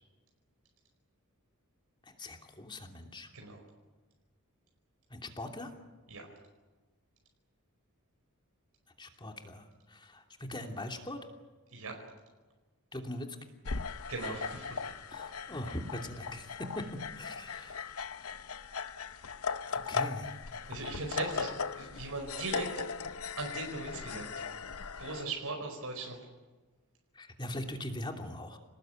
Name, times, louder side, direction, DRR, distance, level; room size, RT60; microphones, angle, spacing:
voice 1, 2.0-3.3 5.1-5.7 9.0-11.2 12.9-13.3 15.1-16.8 17.2-18.0 19.7-20.3 20.7-20.9 27.1-28.6, left 1 dB, 20° left, 3 dB, 2.9 m, -41 dB
sound 1, 13.7-25.2, left 5 dB, 70° left, 0.9 m, -38 dB
voice 2, 14.1-14.9 17.5-18.0 20.7-22.8 23.4-24.4 25.0-26.2, right 3 dB, 80° right, 1 dB, 4.9 m, -39 dB
29.0 x 19.0 x 9.1 m, 1.3 s
head